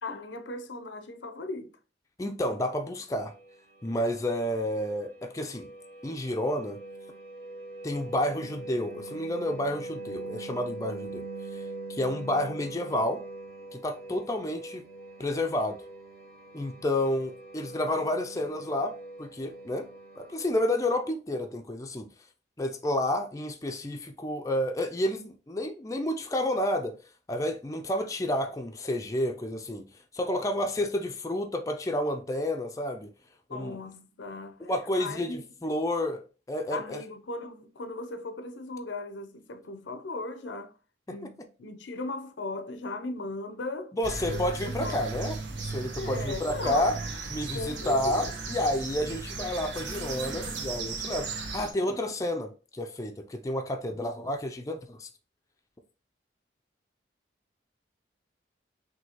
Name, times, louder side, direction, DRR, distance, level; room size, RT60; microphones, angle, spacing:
voice 1, 0.0-1.8 33.5-34.7 35.0-35.4 36.7-40.8 41.1-44.0 44.3-45.1 45.9-46.9 47.5-48.3 49.0-49.1, left 2 dB, 90° left, 0.6 m, -37 dB
voice 2, 2.2-3.3 3.8-5.7 6.0-6.8 7.8-11.2 11.5-11.6 11.9-13.2 13.7-14.9 15.2-15.8 16.5-18.9 19.2-19.9 20.2-22.1 22.6-26.9 27.3-29.8 30.1-33.1 33.5-33.8 34.6-36.2 36.5-37.0 43.9-47.0 47.3-55.1, left 1 dB, 20° left, 0.4 m, -30 dB
sound 1, 3.2-20.5, right 2 dB, 55° right, 1.4 m, -43 dB
sound 2, 44.0-51.7, right 3 dB, 90° right, 1.0 m, -36 dB
6.1 x 2.8 x 2.9 m
head